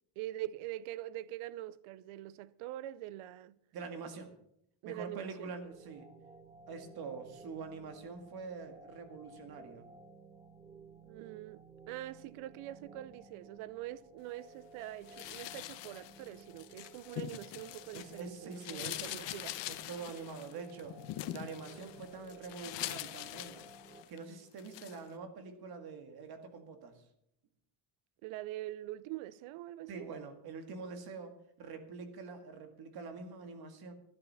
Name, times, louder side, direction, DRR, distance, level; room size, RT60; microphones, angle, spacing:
voice 1, 0.2-3.6 4.8-5.5 11.0-19.6 28.2-30.1, right 14 dB, 75° right, 0.7 m, -44 dB
voice 2, 3.7-4.3 4.8-6.1 6.7-9.9 17.9-19.2 19.7-21.0 21.3-23.7 24.1-27.0 29.9-33.9, right 4 dB, 45° right, 2.0 m, -45 dB
sound 1, 5.6-24.0, right 2 dB, 10° right, 1.0 m, -56 dB
sound 2, 15.1-18.2 18.5-24.2 24.6-25.0, left 14 dB, 60° left, 0.9 m, -43 dB
12.5 x 10.5 x 5.6 m
cardioid pair, 160°, 50 cm